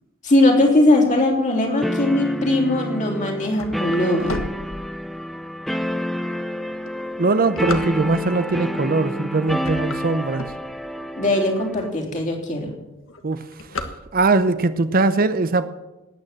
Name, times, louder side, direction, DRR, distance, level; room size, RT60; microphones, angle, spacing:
voice 1, 0.2-4.4 11.2-12.7, left 1 dB, 35° left, 2 dB, 3.4 m, -19 dB
sound 1, 1.8-11.9, equal, ahead, 0.6 m, -29 dB
sound 2, 3.1-5.4 5.9-6.0 6.7-8.4 9.0-9.3 9.5-11.1 11.6-11.7 11.9-12.0 12.3-12.7 12.9-14.5, left 2 dB, 70° left, 1.4 m, -33 dB
voice 2, 7.2-10.5 13.2-13.4 14.1-15.7, right 3 dB, 45° right, 12 dB, 0.7 m, -20 dB
18.5 x 9.3 x 7.5 m, 1.0 s
head